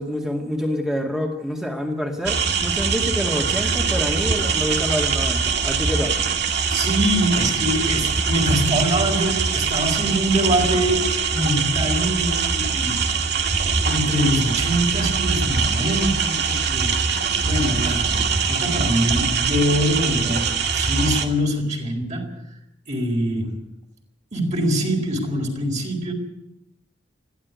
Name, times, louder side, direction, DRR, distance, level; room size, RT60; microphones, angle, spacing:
voice 1, 0.0-6.2, equal, 5° right, 2.1 m, -27 dB
sound 1, 2.2-21.3, right 5 dB, 60° right, 2.2 m, -22 dB
voice 2, 6.7-13.4 13.8-17.0 17.4-22.4 22.9-23.6 24.3-26.1, equal, 40° right, 4.2 m, -24 dB
21.0 x 15.0 x 9.4 m
head